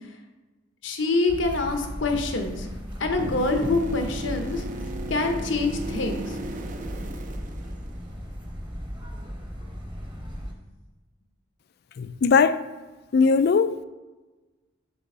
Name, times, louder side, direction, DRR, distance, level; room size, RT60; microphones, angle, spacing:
voice 1, 0.8-2.7 3.0-4.6 5.1-6.4, left 3 dB, 85° left, 1.0 m, -25 dB
sound 1, 1.3-10.5, equal, 25° right, 1.1 m, -36 dB
sound 2, 3.2-8.2 12.2-12.3, right 1 dB, 45° right, 0.6 m, -35 dB
voice 2, 12.0-12.6 13.1-13.8, left 5 dB, 55° left, 0.4 m, -20 dB
6.9 x 3.6 x 5.4 m
head